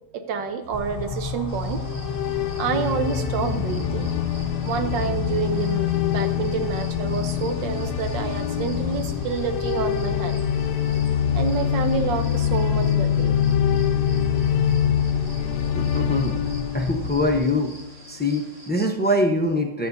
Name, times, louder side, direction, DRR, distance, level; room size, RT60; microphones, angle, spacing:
voice 1, 0.1-1.8 2.6-4.1 4.6-10.4 11.3-13.3, right 6 dB, 75° right, 7 dB, 1.7 m, -28 dB
sound 1, 0.7-17.5, left 4 dB, 40° left, 0.9 m, -32 dB
sound 2, 1.5-18.7, right 1 dB, 50° right, 3.3 m, -47 dB
sound 3, 1.8-17.9, left 10 dB, 70° left, 1.1 m, -25 dB
voice 2, 15.7-16.4 16.7-17.7 18.1-19.9, left 1 dB, 10° left, 2 dB, 0.5 m, -23 dB
19.5 x 8.7 x 2.7 m, 0.88 s
omnidirectional pair, 2.0 m